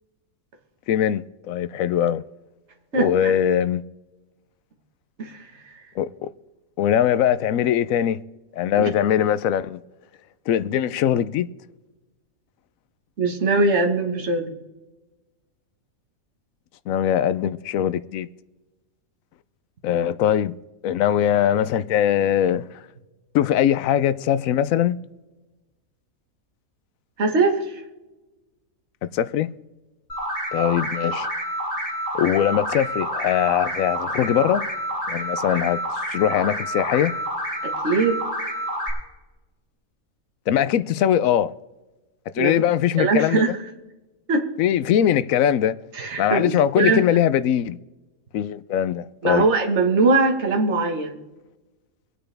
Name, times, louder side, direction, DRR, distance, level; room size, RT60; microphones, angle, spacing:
voice 1, 0.9-2.2 3.0-3.8 6.0-6.3 6.8-8.2 8.5-9.8 10.5-11.5 16.9-18.3 19.8-20.5 20.8-22.8 23.3-25.0 29.1-29.5 30.5-31.3 32.1-34.6 35.1-37.1 40.5-41.5 42.3-43.6 44.6-45.8 46.2-47.8 48.3-49.5, left 10 dB, 75° left, 1.0 m, -21 dB
voice 2, 2.9-3.3 5.2-5.8 8.8-8.9 13.2-14.5 27.2-27.8 37.6-38.2 42.4-42.6 43.0-43.6 44.3-44.5 45.9-47.0 49.2-51.2, right 3 dB, 55° right, 1.7 m, -21 dB
sound 1, 30.1-38.9, equal, 25° left, 5.6 m, -28 dB
24.5 x 8.8 x 3.4 m
omnidirectional pair, 1.5 m